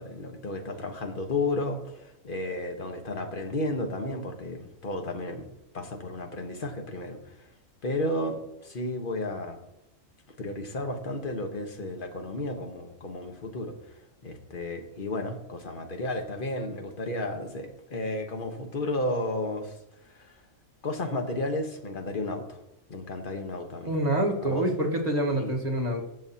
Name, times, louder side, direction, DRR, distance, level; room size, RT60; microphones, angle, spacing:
voice 1, 0.0-5.4 5.7-7.5 7.8-9.6 10.4-13.9 14.2-19.8 20.0-20.4 20.8-22.6 22.9-23.9 24.4-24.7 25.3-25.6, left 2 dB, 40° left, 4 dB, 1.3 m, -33 dB
voice 2, 23.9-26.1, right 1 dB, 30° right, 1 dB, 1.4 m, -26 dB
15.5 x 7.2 x 2.8 m, 0.86 s
omnidirectional pair, 1.4 m